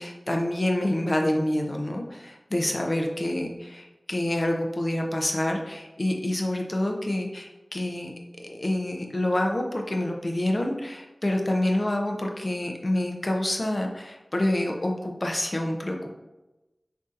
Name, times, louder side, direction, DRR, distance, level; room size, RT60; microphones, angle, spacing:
voice 1, 0.0-8.1 8.4-16.1, left 1 dB, 40° left, 2 dB, 0.5 m, -27 dB
6.2 x 2.7 x 2.5 m, 1.0 s
wide cardioid pair, 70°, 0 cm